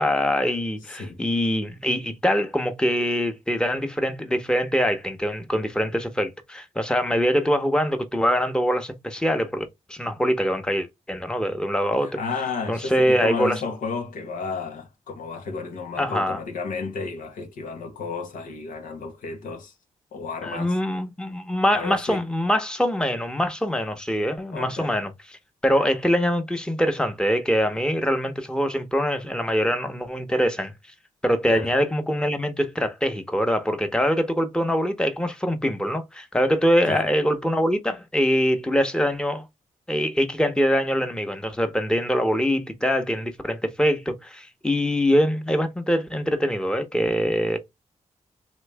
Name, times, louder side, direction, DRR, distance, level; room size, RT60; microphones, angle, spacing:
voice 1, 0.0-12.2 12.7-13.6 16.0-16.4 20.4-30.7 31.2-39.5 39.9-47.6, equal, 5° left, 0.9 m, -23 dB
voice 2, 12.0-19.7 20.1-20.7 21.7-22.2 24.5-24.9 31.5-31.7 36.8-37.1, left 4 dB, 85° left, 1.0 m, -32 dB
3.1 x 2.8 x 3.3 m
cardioid pair, 70°, 13 cm